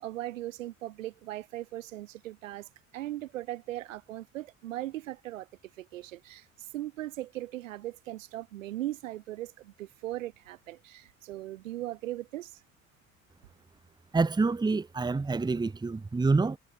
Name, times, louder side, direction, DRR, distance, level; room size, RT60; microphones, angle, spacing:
voice 1, 0.0-2.7 2.9-5.5 5.8-6.5 6.7-12.6, right 15 dB, 70° right, 1.1 m, -38 dB
voice 2, 14.1-16.6, right 3 dB, 10° right, 0.9 m, -27 dB
figure-of-eight pair, 55°, 40 cm